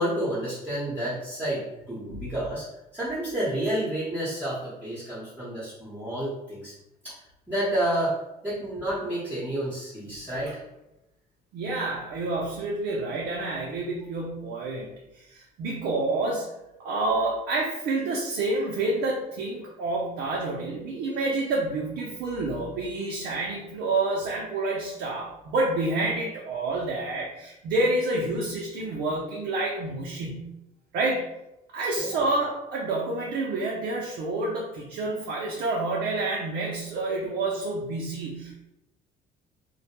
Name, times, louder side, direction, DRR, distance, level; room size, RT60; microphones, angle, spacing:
voice 1, 0.0-2.6 2.9-6.7 7.0-7.1 7.5-8.2 8.4-10.6 32.0-32.2, right 1 dB, 10° right, -11 dB, 0.8 m, -30 dB
voice 2, 11.5-14.9 15.1-16.5 16.8-30.5 30.9-31.2 31.7-38.6, right 2 dB, 75° right, -3 dB, 0.5 m, -28 dB
2.2 x 2.1 x 2.9 m, 0.92 s
cardioid pair, 110°, 17 cm